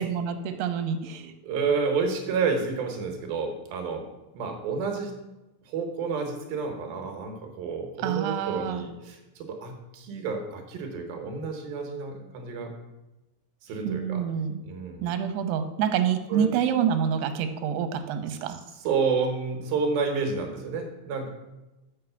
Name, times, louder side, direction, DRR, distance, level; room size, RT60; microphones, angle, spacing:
voice 1, 0.0-1.3 8.0-8.8 13.8-14.6 15.0-18.6, right 8 dB, 85° right, 8 dB, 2.9 m, -27 dB
voice 2, 1.2-4.1 4.3-5.2 5.7-12.7 13.6-14.2 14.6-15.1 16.3-16.5 18.8-21.3, right 5 dB, 70° right, 4 dB, 2.9 m, -30 dB
6.8 x 6.5 x 6.8 m, 1.0 s
omnidirectional pair, 4.7 m